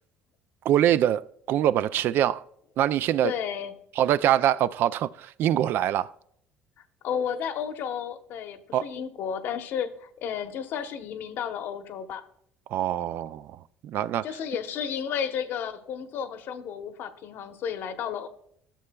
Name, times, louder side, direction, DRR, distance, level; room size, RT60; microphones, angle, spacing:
voice 1, 0.7-1.2 1.5-2.4 2.8-3.3 4.0-6.1 8.7-8.9 12.7-13.5 13.8-14.3, right 11 dB, 60° right, 0.3 m, -24 dB
voice 2, 3.2-3.7 7.0-12.2 14.2-18.3, left 8 dB, 65° left, 0.9 m, -32 dB
13.0 x 6.7 x 2.3 m
cardioid pair, 115°, 4 cm